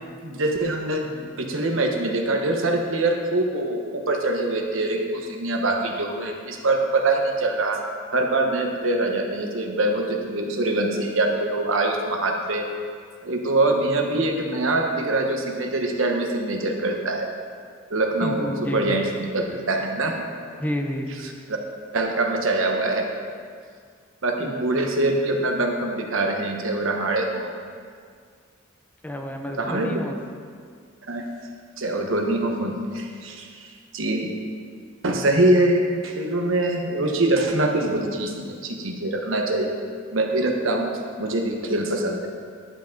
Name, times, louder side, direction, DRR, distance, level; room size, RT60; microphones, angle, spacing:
voice 1, 0.2-7.8 8.1-12.7 13.2-17.3 17.9-19.1 19.3-20.2 21.5-21.6 21.9-23.1 24.2-27.5 29.6-30.0 31.1-31.3 31.8-34.3 35.0-39.7 40.1-42.3, right 2 dB, 70° right, 2 dB, 1.1 m, -24 dB
voice 2, 18.2-19.1 20.6-21.1 24.4-24.5 29.0-30.2, equal, 10° left, 3 dB, 0.6 m, -30 dB
11.0 x 7.5 x 3.9 m, 2.1 s
head